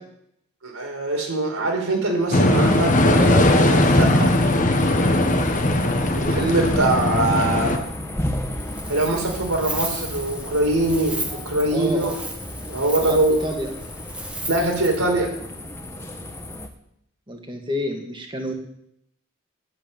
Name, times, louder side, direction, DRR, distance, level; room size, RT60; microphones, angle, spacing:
voice 1, 0.6-4.3 6.2-7.8 8.9-11.2 11.4-12.1 12.7-13.4 14.5-15.3, right 2 dB, 90° right, 1 dB, 4.3 m, -22 dB
sound 1, 2.2-16.7, left 1 dB, 10° left, 1.1 m, -34 dB
sound 2, 2.3-7.8, left 1 dB, 35° left, 1.2 m, -19 dB
voice 2, 5.9-6.5 11.7-12.2 13.0-13.7 17.3-18.5, equal, 20° right, 3 dB, 1.9 m, -30 dB
Wind, 8.6-15.1, right 2 dB, 5° right, 1.2 m, -35 dB
10.5 x 7.9 x 9.2 m, 0.72 s
head